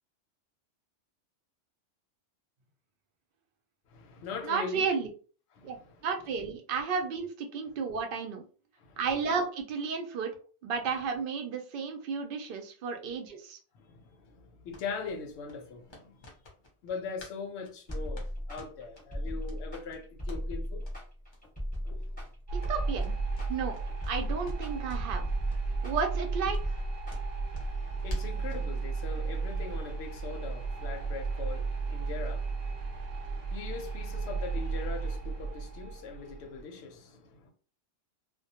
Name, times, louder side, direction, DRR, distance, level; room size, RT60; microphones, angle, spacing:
voice 1, 3.9-4.9 5.5-6.0 8.8-9.0 13.7-16.3 16.8-20.8 21.8-22.2 27.7-37.5, left 5 dB, 70° left, 0.8 m, -41 dB
voice 2, 4.4-5.1 5.6-5.8 6.0-8.4 9.0-10.3 10.6-13.6 22.7-23.1 23.5-23.8 24.1-25.3 25.8-26.8, right 5 dB, 60° right, 0.6 m, -32 dB
sound 1, 14.7-17.4 17.6-19.0 19.4-19.6 19.9-20.4 20.8-21.0 21.3-21.4 21.7-21.8 22.1-24.2 24.4-25.2 25.5-25.6 26.0-26.1 26.5-28.7, left 1 dB, 35° left, 0.4 m, -45 dB
sound 2, 17.9-27.7, equal, 5° left, 1.0 m, -37 dB
sound 3, 22.5-36.6, right 4 dB, 80° right, 0.9 m, -34 dB
2.2 x 2.1 x 2.8 m
omnidirectional pair, 1.3 m